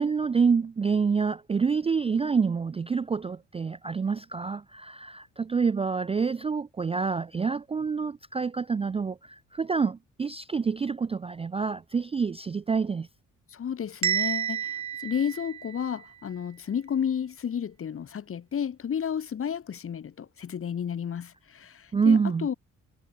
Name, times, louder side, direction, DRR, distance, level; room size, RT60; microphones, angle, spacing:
voice 1, 0.0-13.1 21.9-22.5, right 5 dB, 15° right, 0.4 m, -27 dB
voice 2, 13.5-14.7 15.0-22.5, left 8 dB, 35° left, 1.0 m, -32 dB
Bell, 14.0-16.1, right 10 dB, 45° right, 1.4 m, -30 dB
figure-of-eight pair, 40°, 39 cm